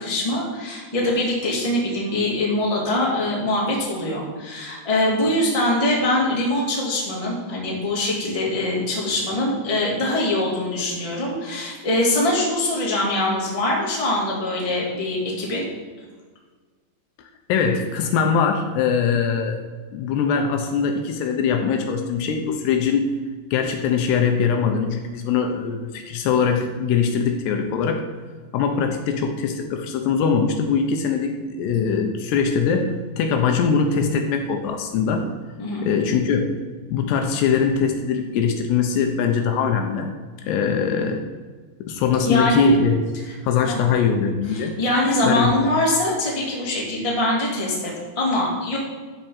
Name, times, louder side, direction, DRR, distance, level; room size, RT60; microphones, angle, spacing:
voice 1, 0.0-15.7 35.6-35.9 42.2-42.7 43.2-43.3 43.6-43.8 44.5-48.8, left 1 dB, 10° left, -4 dB, 1.8 m, -23 dB
voice 2, 17.5-19.6 19.9-23.1 23.5-28.0 28.5-35.3 35.8-36.5 36.9-40.1 40.4-41.2 41.8-43.0 43.4-44.7 45.2-45.5, left 6 dB, 75° left, 5 dB, 2.8 m, -22 dB
13.5 x 4.5 x 7.2 m, 1.4 s
omnidirectional pair, 5.1 m